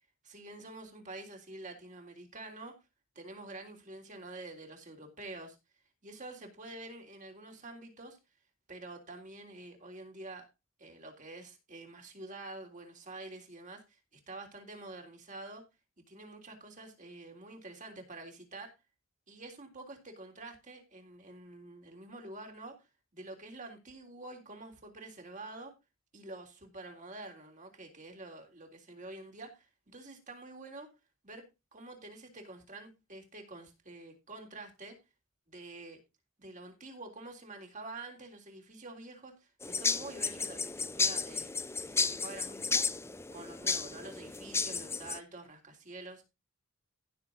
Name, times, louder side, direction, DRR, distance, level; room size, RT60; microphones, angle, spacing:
voice 1, 0.2-2.8 3.1-5.6 6.0-8.2 8.7-10.5 10.8-15.6 16.0-18.7 19.3-22.9 23.1-25.7 26.1-30.9 31.2-34.9 35.5-36.0 36.4-41.5 41.8-43.0 43.3-46.3, right 2 dB, 35° right, 3.5 m, -47 dB
sound 1, 39.6-45.2, left 4 dB, 10° left, 0.5 m, -33 dB
15.5 x 7.0 x 4.0 m
head